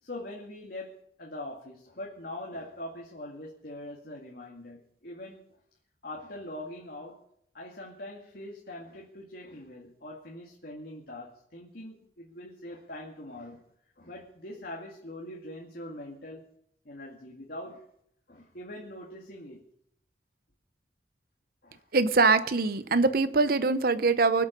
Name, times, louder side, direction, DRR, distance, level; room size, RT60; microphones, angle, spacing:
voice 1, 0.0-5.5 6.0-7.2 7.5-13.6 14.0-16.5 16.8-17.8 18.3-19.6 21.6-21.8, left 1 dB, 55° left, -2 dB, 2.2 m, -42 dB
voice 2, 21.9-24.5, right 3 dB, 55° right, 12 dB, 0.8 m, -23 dB
24.5 x 8.3 x 5.3 m, 0.70 s
head